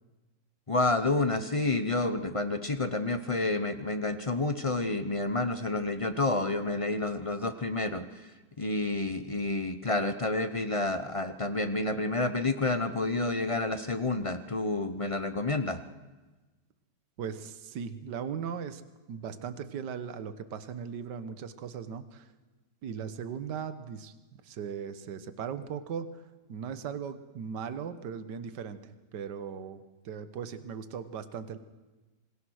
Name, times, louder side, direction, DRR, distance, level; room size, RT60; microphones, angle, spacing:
voice 1, 0.7-8.3 8.6-15.8, left 2 dB, 30° left, 10 dB, 0.6 m, -29 dB
voice 2, 17.2-18.8 19.1-22.3 22.8-26.2 26.5-31.6, right 7 dB, 75° right, 11 dB, 1.7 m, -38 dB
26.5 x 22.0 x 6.4 m, 1.2 s
omnidirectional pair, 1.9 m